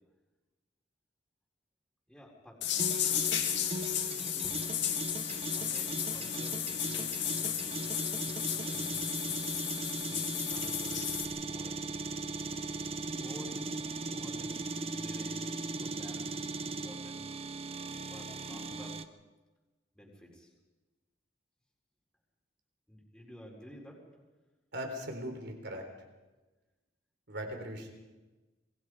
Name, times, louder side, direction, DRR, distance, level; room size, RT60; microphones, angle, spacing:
voice 1, 2.1-2.7 4.2-4.6 5.5-9.6 10.0-11.9 13.2-13.8 14.2-17.2 18.1-19.0 19.9-20.5 22.9-24.0, equal, 5° left, -2 dB, 4.5 m, -52 dB
sound 1, 2.6-11.3, left 10 dB, 65° left, 2.4 m, -34 dB
sound 2, 2.8-19.0, right 3 dB, 30° right, 1.0 m, -38 dB
voice 2, 24.7-25.8 27.3-27.9, equal, 60° right, 4 dB, 4.0 m, -39 dB
27.0 x 22.0 x 5.0 m, 1.2 s
head